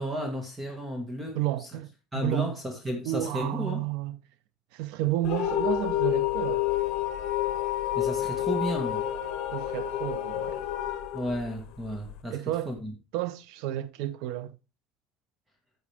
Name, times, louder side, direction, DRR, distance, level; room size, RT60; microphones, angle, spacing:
voice 1, 0.0-1.7 2.1-3.8 7.9-9.0 11.1-12.4 12.7-12.9, equal, 10° right, 1.7 m, -33 dB
voice 2, 1.3-1.9 2.1-2.5 3.0-4.2 4.7-6.7 9.5-10.6 12.3-12.7 13.1-14.6, right 14 dB, 75° right, 0.7 m, -31 dB
sound 1, 5.2-12.2, left 13 dB, 55° left, 1.4 m, -29 dB
10.0 x 8.0 x 3.5 m
cardioid pair, 155°, 0 cm